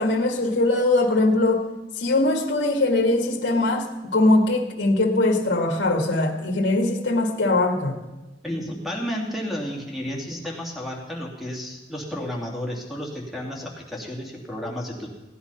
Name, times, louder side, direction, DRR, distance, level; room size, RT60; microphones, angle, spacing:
voice 1, 0.0-8.0, left 2 dB, 70° left, 0 dB, 1.7 m, -21 dB
voice 2, 8.4-15.1, equal, ahead, -1 dB, 2.7 m, -32 dB
16.5 x 10.5 x 5.7 m, 1.1 s
head